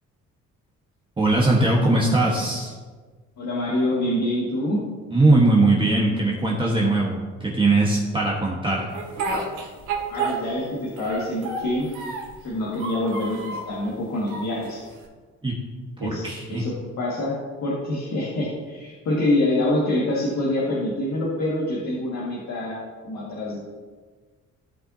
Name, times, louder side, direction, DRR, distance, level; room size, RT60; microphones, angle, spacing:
voice 1, 1.2-2.7 5.1-8.9 15.4-15.5 16.0-16.6, right 2 dB, 15° right, -3 dB, 1.3 m, -20 dB
voice 2, 3.4-4.8 10.1-11.9 12.4-14.8 16.0-17.3 17.6-22.8 23.0-23.7, left 1 dB, 65° left, -5 dB, 1.9 m, -26 dB
Speech, 8.9-10.7 11.0-12.4 12.7-13.7 14.3-15.0, right 4 dB, 90° right, 2.0 m, -30 dB
15.0 x 5.5 x 2.8 m, 1.4 s
cardioid pair, 90°, 30 cm